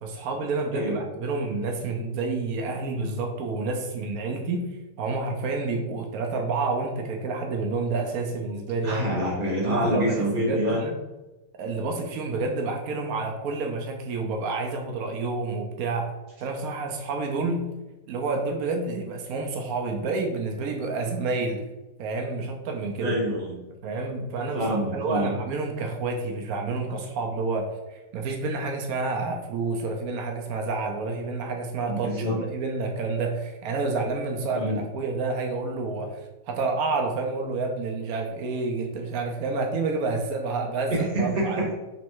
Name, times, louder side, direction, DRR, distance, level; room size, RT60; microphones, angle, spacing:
voice 1, 0.0-9.1 9.6-11.0 11.6-16.1 16.4-17.6 18.1-21.6 22.0-23.2 23.8-41.6, right 3 dB, 80° right, 2 dB, 0.8 m, -29 dB
voice 2, 8.8-10.8 22.9-23.6 24.5-25.3 31.9-32.4 34.5-34.8 40.9-41.7, right 1 dB, 50° right, -3 dB, 1.6 m, -26 dB
3.5 x 3.1 x 4.5 m, 1.1 s
omnidirectional pair, 2.2 m